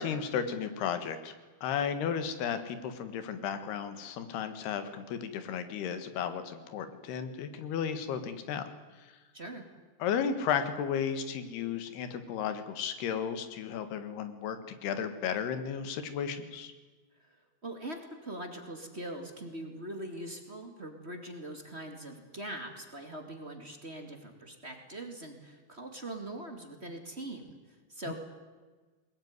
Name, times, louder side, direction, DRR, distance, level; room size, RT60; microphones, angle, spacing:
voice 1, 0.0-1.3 1.6-8.6 10.0-16.7 28.1-28.2, left 7 dB, 85° left, 10 dB, 3.6 m, -34 dB
voice 2, 9.3-9.7 17.6-27.6 27.9-28.2, right 1 dB, 20° right, 4 dB, 1.8 m, -42 dB
22.0 x 20.0 x 9.6 m, 1.3 s
omnidirectional pair, 4.5 m